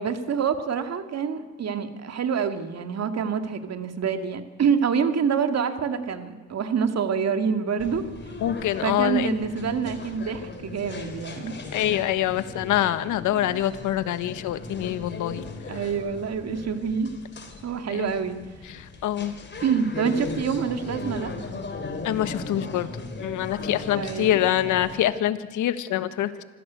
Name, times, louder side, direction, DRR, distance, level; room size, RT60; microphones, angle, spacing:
voice 1, 0.0-8.0 8.8-11.6 15.7-17.1 17.6-18.4 19.6-21.3 23.9-24.4, right 6 dB, 55° right, 8 dB, 2.4 m, -26 dB
sound 1, 7.8-25.1, left 3 dB, 35° left, 3.7 m, -38 dB
voice 2, 8.4-9.4 11.7-15.4 17.9-18.1 18.7-19.3 22.0-22.9 23.2-26.4, left 12 dB, 80° left, 13 dB, 1.4 m, -25 dB
26.0 x 16.0 x 8.2 m, 1.5 s
cardioid pair, 90°, 30 cm